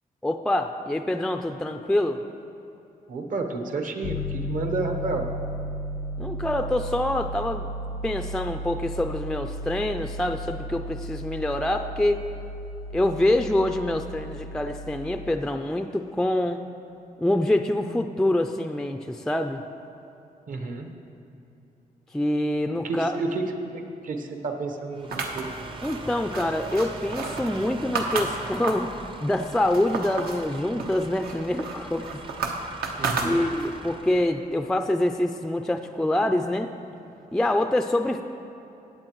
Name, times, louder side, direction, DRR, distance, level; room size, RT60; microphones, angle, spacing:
voice 1, 0.2-2.2 6.2-7.7 8.0-12.2 12.9-16.6 17.2-19.6 22.1-23.2 25.8-28.9 29.2-32.2 33.2-36.7 37.3-38.2, left 1 dB, 5° left, 7 dB, 0.3 m, -25 dB
voice 2, 3.1-5.3 20.5-20.9 22.8-25.1 25.3-25.5 33.0-33.4, right 3 dB, 60° right, 4 dB, 1.1 m, -30 dB
Piano, 4.0-15.3, equal, 85° left, 0.5 m, -34 dB
sound 1, 24.9-34.3, right 3 dB, 35° right, 0.6 m, -42 dB
sound 2, 25.1-29.0 29.4-30.4 30.8-33.8, right 4 dB, 80° right, 1.0 m, -32 dB
16.5 x 8.3 x 3.1 m, 2.9 s
cardioid pair, 110°, 15 cm